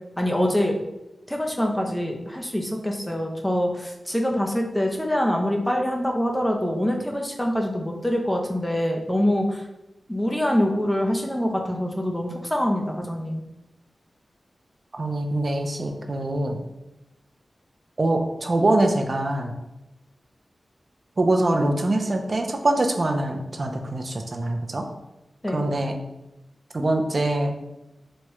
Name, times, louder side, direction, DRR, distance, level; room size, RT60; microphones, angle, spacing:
voice 1, 0.2-0.8 1.3-9.6 10.1-13.4 25.4-25.6, equal, 10° left, 1 dB, 0.5 m, -25 dB
voice 2, 14.9-16.6 18.0-19.5 21.2-24.8 25.5-25.9 26.7-27.5, right 2 dB, 50° right, 4 dB, 0.4 m, -24 dB
3.0 x 2.2 x 2.9 m, 0.94 s
cardioid pair, 60°, 0 cm